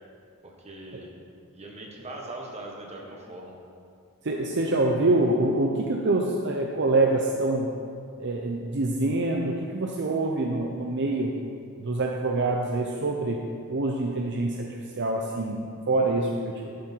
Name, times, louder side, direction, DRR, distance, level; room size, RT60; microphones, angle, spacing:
voice 1, 0.4-1.2 1.5-3.6, right 2 dB, 30° right, -1 dB, 1.5 m, -41 dB
voice 2, 4.2-7.7 8.2-11.3 11.8-13.4 13.7-16.8, right 2 dB, 55° right, 1 dB, 0.7 m, -25 dB
11.5 x 8.8 x 4.5 m, 2.4 s
head